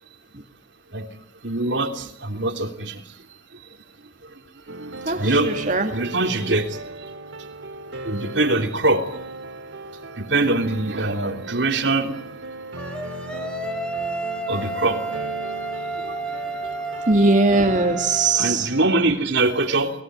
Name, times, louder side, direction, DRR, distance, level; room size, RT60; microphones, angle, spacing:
voice 1, 1.4-3.0 4.8-6.8 8.0-9.0 10.2-12.1 14.5-15.0 16.0-16.2 18.3-19.9, right 2 dB, 70° right, 5 dB, 3.3 m, -23 dB
sound 1, 4.7-18.9, right 2 dB, 90° right, 2.8 m, -36 dB
voice 2, 5.1-5.9 17.1-18.7, right 3 dB, 45° right, 4 dB, 2.1 m, -20 dB
sound 2, 12.8-18.5, right 2 dB, 5° left, 3.2 m, -31 dB
28.5 x 20.5 x 9.2 m, 0.65 s
head